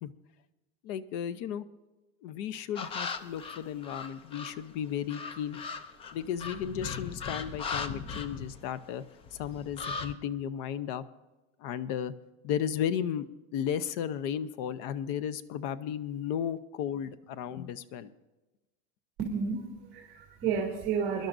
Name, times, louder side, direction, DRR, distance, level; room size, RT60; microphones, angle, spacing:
voice 1, 0.8-1.7 2.2-5.6 6.1-9.0 9.3-11.0 11.6-12.1 12.4-13.3 13.5-18.1, left 9 dB, 55° left, 15 dB, 0.7 m, -34 dB
sound 1, 2.7-4.6 5.1-9.0 9.2-10.1, left 5 dB, 20° left, 0.4 m, -38 dB
voice 2, 19.2-21.3, right 6 dB, 30° right, -1 dB, 2.1 m, -31 dB
23.0 x 11.5 x 2.6 m, 1.1 s
cardioid pair, 165°, 31 cm